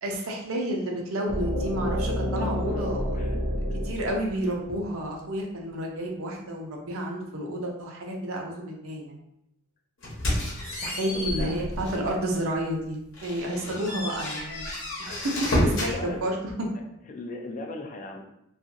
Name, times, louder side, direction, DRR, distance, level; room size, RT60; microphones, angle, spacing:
voice 1, 0.0-3.0 3.8-9.2 10.8-14.7 15.0-16.3, right 1 dB, 75° right, 0 dB, 0.6 m, -30 dB
sound 1, 1.3-5.2, equal, 40° right, 0.8 m, -29 dB
voice 2, 2.5-2.9 3.1-3.4 3.7-3.8 11.1-11.6 13.7-13.9 15.5-16.2 17.1-18.2, left 3 dB, 40° left, 3 dB, 0.4 m, -37 dB
sound 2, 10.0-12.1 12.6-12.7 13.1-16.0, left 1 dB, 65° left, 1.0 m, -30 dB
2.8 x 2.4 x 2.6 m, 0.82 s
head